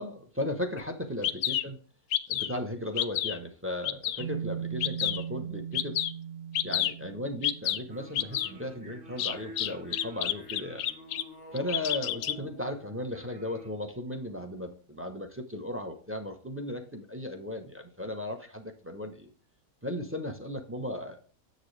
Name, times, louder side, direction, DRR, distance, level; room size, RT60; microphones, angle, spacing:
voice 1, 0.0-1.8 2.3-6.0 6.6-10.8 11.5-19.3 19.8-21.2, left 1 dB, 15° right, 4 dB, 0.5 m, -36 dB
Bird vocalization bird call bird song, 0.8-0.9 1.2-1.6 2.1-2.6 3.0-3.4 3.8-4.2 4.8-5.2 5.7-6.1 6.5-6.9 7.4-7.8 8.2-8.5 9.2-11.2 11.6-12.4, left 12 dB, 75° left, 1.1 m, -29 dB
sound 1, 4.2-8.5, right 8 dB, 65° right, 0.5 m, -39 dB
sound 2, 7.9-13.7, equal, 35° right, 1.8 m, -49 dB
7.9 x 6.7 x 3.2 m, 0.42 s
omnidirectional pair, 1.8 m